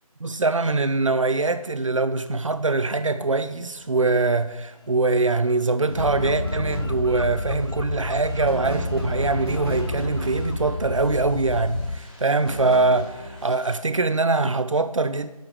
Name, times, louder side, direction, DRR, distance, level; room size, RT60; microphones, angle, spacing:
voice 1, 0.2-15.3, right 3 dB, 55° right, 0.6 m, -23 dB
sound 1, 3.5-13.7, left 1 dB, 15° left, 1.2 m, -53 dB
sound 2, 5.9-7.4 8.3-10.9 12.3-13.5, right 1 dB, 40° right, 2.2 m, -34 dB
sound 3, 6.0-12.0, left 2 dB, 45° left, 0.5 m, -30 dB
9.4 x 6.5 x 3.6 m
figure-of-eight pair, 170°, 19 cm